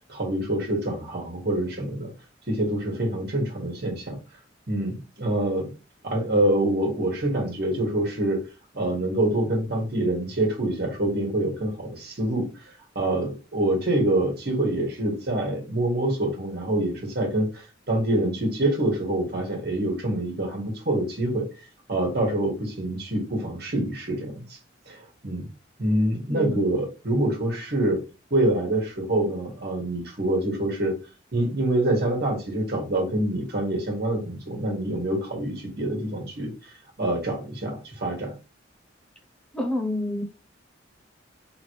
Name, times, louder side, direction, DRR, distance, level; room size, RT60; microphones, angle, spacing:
voice 1, 0.1-2.1 2.5-4.2 4.7-5.7 6.0-8.4 8.7-12.5 12.9-17.5 17.9-21.5 21.9-24.4 24.9-25.0 25.2-25.5 25.8-28.0 28.3-30.9 31.3-36.5 37.0-38.3, right 1 dB, 55° right, 1.6 m, -26 dB
voice 2, 26.3-26.6 39.5-40.2, left 1 dB, 5° left, 0.5 m, -28 dB
3.5 x 3.1 x 3.2 m
head